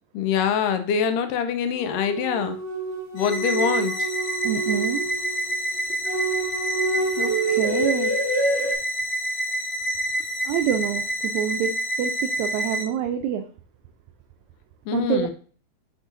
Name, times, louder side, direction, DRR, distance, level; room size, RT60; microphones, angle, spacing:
voice 1, 0.1-2.6 3.1-4.1 14.9-15.3, left 7 dB, 80° left, 9 dB, 2.3 m, -24 dB
sound 1, 1.8-8.7, right 2 dB, 20° right, 2.1 m, -27 dB
sound 2, 3.2-12.8, equal, 65° left, 1.6 m, -28 dB
voice 2, 4.4-5.0 7.2-8.1 8.6-8.7 10.4-11.7 12.0-13.4 14.9-15.3, right 9 dB, 90° right, 7 dB, 1.6 m, -26 dB
6.4 x 6.2 x 2.5 m, 0.42 s
omnidirectional pair, 3.8 m